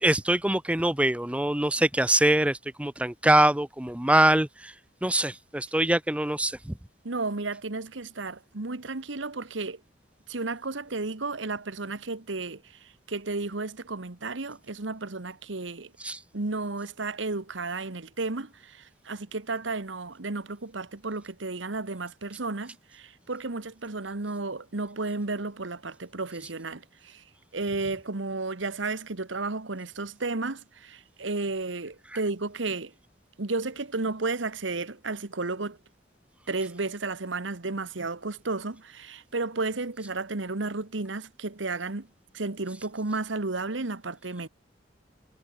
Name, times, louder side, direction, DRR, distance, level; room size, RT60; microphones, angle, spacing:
voice 1, 0.0-4.7 5.0-6.8 16.0-16.2, right 1 dB, 5° right, 0.7 m, -24 dB
voice 2, 7.0-9.8 10.3-15.9 16.3-27.2 27.5-32.9 33.4-35.8 36.5-42.1 42.3-44.5, right 3 dB, 85° right, 1.4 m, -33 dB
head